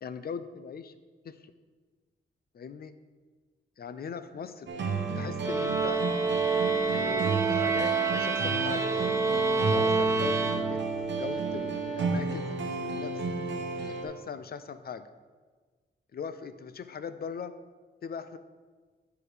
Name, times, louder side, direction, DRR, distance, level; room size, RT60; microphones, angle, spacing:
voice 1, 0.0-0.9 1.2-1.4 2.5-2.9 3.8-4.7 5.2-6.1 6.9-8.9 9.7-10.8 11.2-12.6 12.8-13.1 13.8-15.1 16.1-17.5 18.0-18.4, left 6 dB, 55° left, 11 dB, 0.5 m, -39 dB
sound 1, 4.7-14.0, right 4 dB, 80° right, 1.0 m, -32 dB
sound 2, 5.4-11.1, right 4 dB, 15° right, 0.6 m, -28 dB
9.3 x 4.8 x 5.0 m, 1.4 s
wide cardioid pair, 95°, 19 cm